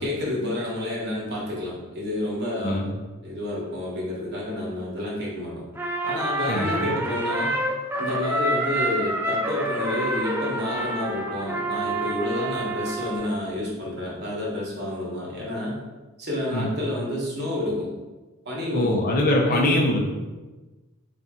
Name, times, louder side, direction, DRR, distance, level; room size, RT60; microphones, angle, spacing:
voice 1, 0.0-2.9 3.2-5.6 6.0-7.6 8.0-15.8 16.2-17.9 18.4-19.0 19.4-19.9, left 1 dB, 50° right, -4 dB, 1.1 m, -29 dB
Trumpet, 5.7-13.3, right 1 dB, 10° right, 0.4 m, -28 dB
voice 2, 6.5-6.9 16.5-16.7 18.7-20.0, left 1 dB, 40° left, 0 dB, 0.5 m, -23 dB
4.1 x 2.5 x 3.6 m, 1.2 s
head